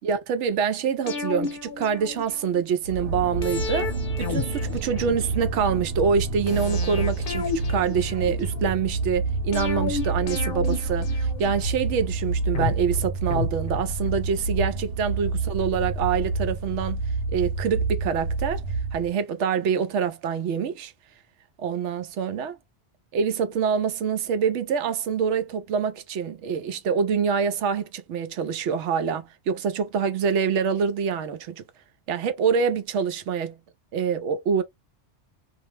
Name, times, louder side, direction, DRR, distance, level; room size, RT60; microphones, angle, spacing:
voice 1, 0.0-3.9 4.2-17.0 17.3-18.6 18.9-20.9 21.6-22.6 23.1-31.6 32.1-33.6 33.9-34.6, right 6 dB, 85° right, 0.9 m, -26 dB
sound 1, 1.1-2.6 3.4-5.5 6.5-8.7 9.5-11.9 12.5-14.2 14.5-14.6, left 5 dB, 55° left, 0.9 m, -32 dB
sound 2, 2.8-19.1, right 3 dB, 65° right, 0.8 m, -28 dB
2.5 x 2.0 x 3.0 m
omnidirectional pair, 1.2 m